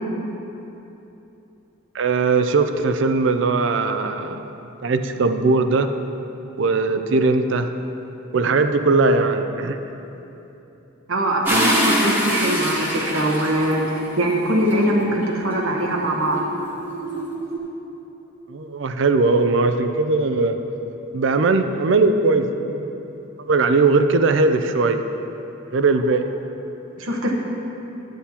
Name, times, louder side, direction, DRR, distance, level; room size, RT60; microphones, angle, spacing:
voice 1, 1.9-4.5 4.8-5.9 6.6-7.7 8.3-9.8 18.5-20.6 21.1-23.0 23.5-25.0 25.7-26.3, right 3 dB, 60° right, 8 dB, 0.4 m, -19 dB
voice 2, 11.1-16.4 27.0-27.3, right 1 dB, 80° right, -1 dB, 1.1 m, -22 dB
sound 1, 11.4-14.0 14.7-17.6, equal, 10° right, 1.1 m, -25 dB
10.0 x 9.4 x 2.9 m, 3.0 s
head